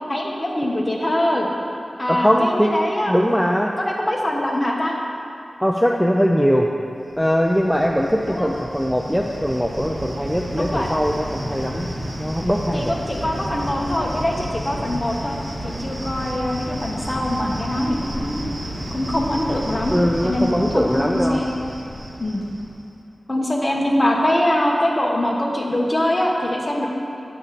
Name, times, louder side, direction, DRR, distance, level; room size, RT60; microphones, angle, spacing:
voice 1, 0.1-1.5 2.0-3.2 3.8-5.0 8.3-8.5 10.5-10.9 12.7-15.4 15.6-18.5 18.9-20.0 20.2-21.5 22.2-22.4 23.3-26.9, left 1 dB, 25° left, -2 dB, 1.3 m, -23 dB
voice 2, 2.1-2.7 3.1-3.7 5.6-6.7 7.2-11.9 12.2-12.8 19.9-21.4, equal, ahead, 0 dB, 0.4 m, -20 dB
Cricket, 7.1-22.8, equal, 40° right, 2.0 m, -31 dB
8.8 x 8.4 x 4.1 m, 2.6 s
wide cardioid pair, 85°, 0 cm